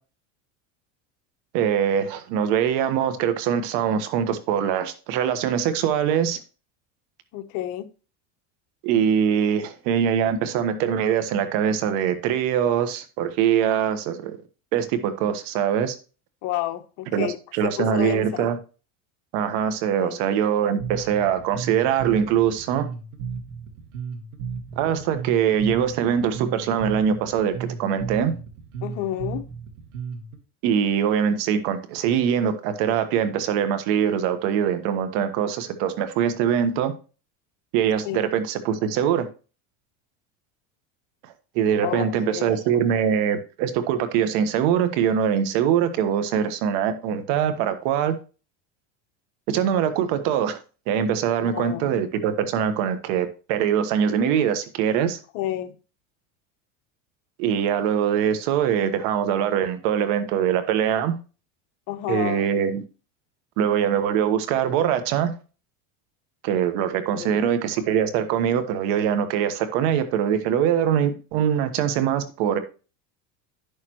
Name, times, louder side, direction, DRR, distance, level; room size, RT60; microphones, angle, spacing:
voice 1, 1.5-6.4 8.8-14.4 14.7-16.0 17.1-18.6 19.3-22.9 24.8-28.3 30.6-36.9 37.7-39.3 41.2-48.2 49.5-50.6 50.9-55.2 57.4-61.1 62.1-62.8 63.6-65.3 66.4-72.6, right 8 dB, 65° right, 1.4 m, -23 dB
voice 2, 7.3-7.9 16.4-17.4 17.8-18.5 20.0-20.2 28.8-29.4 38.0-38.3 41.8-42.5 51.4-52.0 55.3-55.7 61.9-62.5 67.1-67.5, left 13 dB, 55° left, 1.0 m, -30 dB
Bass guitar, 20.8-30.4, right 6 dB, 85° right, 1.9 m, -34 dB
10.5 x 6.7 x 3.0 m
supercardioid pair, 125°, 37 cm